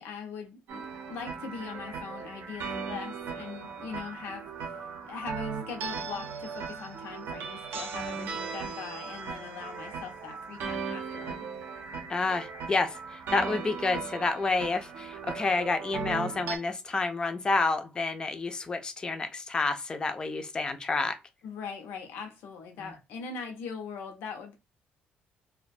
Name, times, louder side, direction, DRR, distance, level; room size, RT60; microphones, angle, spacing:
voice 1, 0.0-4.8 5.0-11.5 21.4-24.5, left 5 dB, 90° left, 0.5 m, -41 dB
sound 1, 0.7-16.6, right 5 dB, 85° right, 0.6 m, -38 dB
voice 2, 12.1-21.2 22.8-22.9, left 3 dB, 25° left, 0.3 m, -29 dB
2.3 x 2.1 x 2.5 m
cardioid pair, 140°, 4 cm